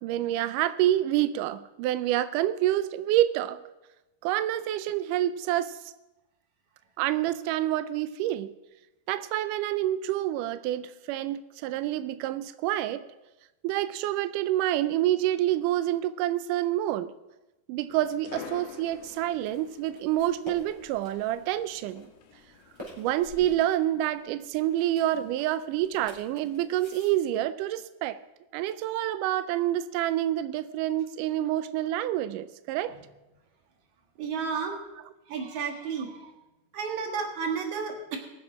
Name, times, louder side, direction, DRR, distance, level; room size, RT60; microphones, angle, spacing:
voice 1, 0.0-3.6 4.2-5.9 7.0-8.5 9.1-13.0 13.6-17.1 17.7-22.1 23.0-28.2 28.5-32.9, right 13 dB, 90° right, 14 dB, 1.8 m, -27 dB
sound 1, 17.9-23.6, left 7 dB, 80° left, 2.9 m, -48 dB
sound 2, 18.8-27.1, left 1 dB, 5° right, 3.9 m, -50 dB
voice 2, 34.2-34.8 35.3-36.3 36.7-38.2, right 6 dB, 55° right, 3 dB, 2.8 m, -32 dB
22.0 x 7.3 x 4.9 m, 1.0 s
omnidirectional pair, 4.3 m